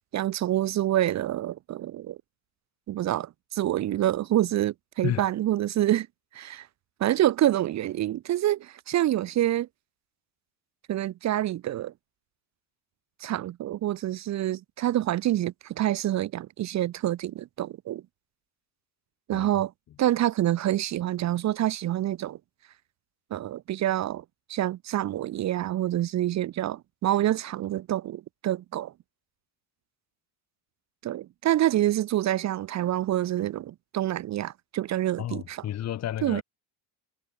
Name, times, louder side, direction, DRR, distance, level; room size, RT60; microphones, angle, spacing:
voice 1, 0.1-2.2 2.9-6.1 6.3-6.7 7.0-9.7 10.9-11.9 13.2-18.0 19.3-19.7 20.0-22.4 23.3-28.9 31.0-35.7 36.2-36.4, right 13 dB, 40° right, 1.1 m, -27 dB
voice 2, 35.2-36.4, left 11 dB, 35° left, 1.7 m, -31 dB
cardioid pair, 175°, 44 cm